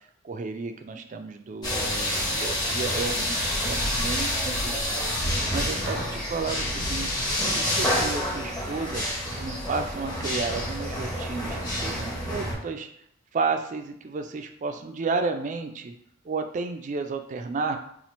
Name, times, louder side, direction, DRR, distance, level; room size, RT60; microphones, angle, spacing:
voice 1, 0.2-9.0 9.4-12.9 13.3-15.9 16.2-17.8, right 4 dB, 35° right, 6 dB, 0.3 m, -32 dB
sound 1, 1.6-12.5, equal, 20° left, 0.9 m, -28 dB
2.8 x 2.4 x 4.3 m, 0.69 s
head